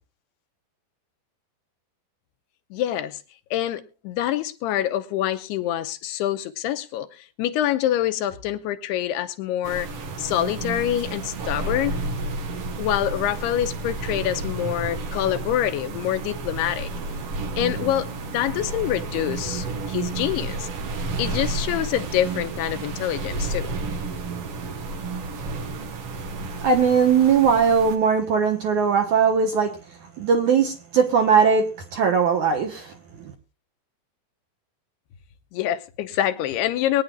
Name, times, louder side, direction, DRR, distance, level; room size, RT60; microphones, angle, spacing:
voice 1, 2.7-3.2 3.5-7.1 7.4-9.9 10.2-12.0 12.8-16.9 17.6-20.7 21.2-23.7 35.5-37.0, left 12 dB, 80° left, 2.8 m, -26 dB
sound 1, 9.6-28.0, right 3 dB, 90° right, 1.2 m, -31 dB
voice 2, 26.6-29.7 30.2-33.3, right 6 dB, 65° right, 2.0 m, -20 dB
22.5 x 9.6 x 2.4 m
omnidirectional pair, 4.9 m